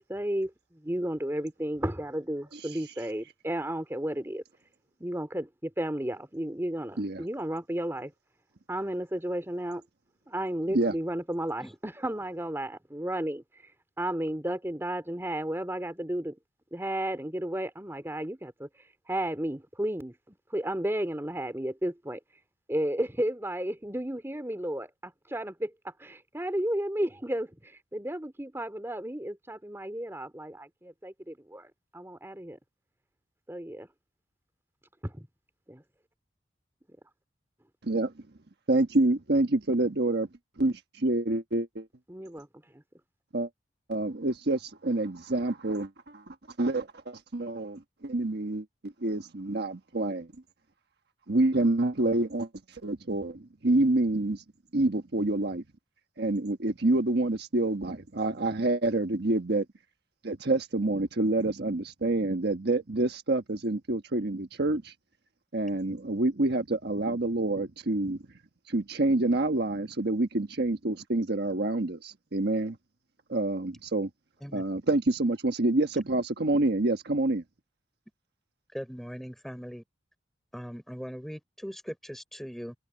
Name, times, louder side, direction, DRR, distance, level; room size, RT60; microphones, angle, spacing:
voice 1, 0.0-4.4 5.0-8.1 8.7-9.8 10.3-13.4 14.0-16.4 16.7-18.7 19.1-22.2 22.7-32.6 33.5-33.9 35.0-35.3 35.7-35.8 42.1-42.5 42.7-42.8, right 1 dB, 15° right, 2.8 m, -33 dB
voice 2, 38.7-40.3 40.6-41.9 43.3-43.5 43.9-46.2 46.6-50.3 51.3-54.4 54.7-55.6 56.2-59.6 60.2-64.9 65.5-68.2 68.7-72.8 73.3-74.1 74.5-77.4, right 2 dB, 60° right, 1.4 m, -27 dB
voice 3, 78.7-79.8 80.5-82.7, equal, ahead, 4.1 m, -40 dB
head